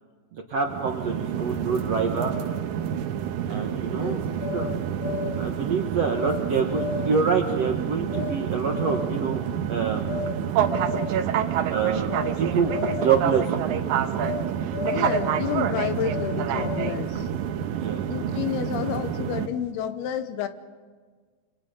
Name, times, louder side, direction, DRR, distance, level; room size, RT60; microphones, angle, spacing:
voice 1, 0.3-2.3 3.5-4.2 4.5-4.7 5.4-9.4 9.7-10.2 11.7-13.8 17.7-18.0, right 5 dB, 60° right, 2 dB, 1.8 m, -26 dB
sound 1, 0.6-19.5, right 9 dB, 75° right, 1.8 m, -28 dB
voice 2, 3.9-4.2 14.9-17.3 18.1-20.5, left 9 dB, 75° left, 10 dB, 2.9 m, -30 dB
sound 2, 4.4-5.5 6.2-6.4 6.7-7.3 8.1-8.4 8.7-9.3 10.0-10.4 10.7-11.3 12.0-12.4 12.7-13.3 14.2-14.5 14.7-15.5 16.1-17.1, left 6 dB, 55° left, 2.7 m, -33 dB
27.5 x 26.5 x 5.2 m, 1.5 s
omnidirectional pair, 4.8 m